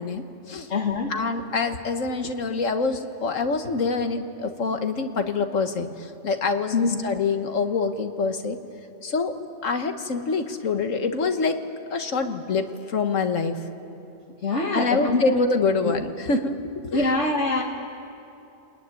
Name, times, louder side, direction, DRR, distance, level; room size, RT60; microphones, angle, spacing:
voice 1, 0.0-0.7 1.1-8.6 9.0-9.4 9.6-11.6 11.9-13.6 14.7-16.5 16.8-17.1, left 4 dB, 90° left, 6 dB, 1.8 m, -25 dB
voice 2, 0.7-1.2 6.7-7.0 14.4-15.2 15.8-16.0 16.9-17.6, left 3 dB, 65° left, -1 dB, 1.9 m, -24 dB
28.5 x 20.5 x 9.8 m, 2.8 s
omnidirectional pair, 1.3 m